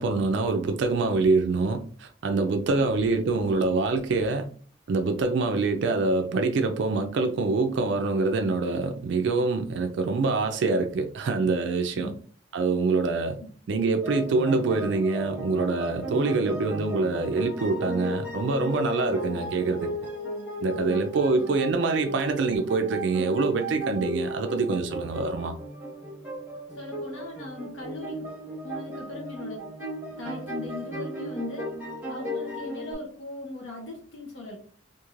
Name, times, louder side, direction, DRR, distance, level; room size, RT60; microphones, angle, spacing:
voice 1, 0.0-4.5 4.9-12.1 12.5-13.4 13.7-19.9 20.6-25.5, right 3 dB, 65° right, 5 dB, 0.3 m, -25 dB
sound 1, 14.0-32.9, equal, 10° right, 0.9 m, -35 dB
voice 2, 20.8-21.1 26.7-28.3 28.6-29.6 30.1-31.8 32.1-34.6, left 2 dB, 70° left, -1 dB, 0.7 m, -39 dB
3.0 x 2.5 x 2.4 m, 0.43 s
head